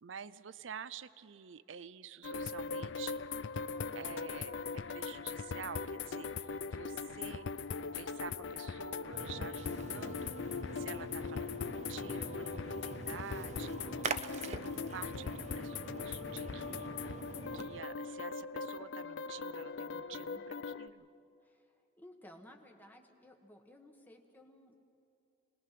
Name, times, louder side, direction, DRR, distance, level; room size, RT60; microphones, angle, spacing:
voice 1, 0.0-3.2 3.9-7.5 7.8-10.3 10.8-21.1, right 7 dB, 85° right, 16 dB, 0.6 m, -49 dB
sound 1, 2.2-20.9, left 5 dB, 70° left, 0.5 m, -40 dB
Splash splatter, 9.1-17.8, right 4 dB, 40° right, 0.6 m, -44 dB
voice 2, 19.9-20.4 21.4-24.8, left 1 dB, 10° left, 2 dB, 1.3 m, -57 dB
26.5 x 19.5 x 5.9 m, 2.5 s
head